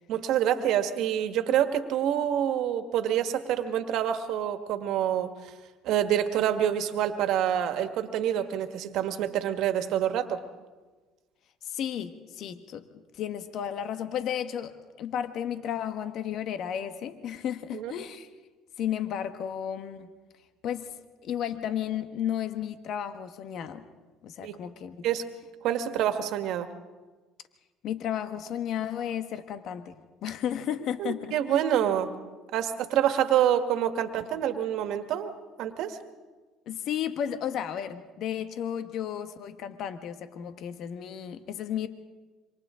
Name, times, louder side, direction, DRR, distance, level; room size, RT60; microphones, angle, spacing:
voice 1, 0.1-5.5 5.8-10.4 17.7-17.9 24.4-24.6 25.0-25.2 25.6-26.7 31.0-32.1 32.5-35.3 35.6-36.0, right 10 dB, 70° right, 8 dB, 1.7 m, -27 dB
voice 2, 11.6-12.8 13.1-18.3 18.8-20.1 20.6-20.9 21.2-23.9 24.2-25.1 27.8-29.9 30.2-31.3 36.7-41.9, left 9 dB, 65° left, 9 dB, 1.3 m, -33 dB
27.0 x 25.5 x 3.8 m, 1.3 s
supercardioid pair, 80°, 0 cm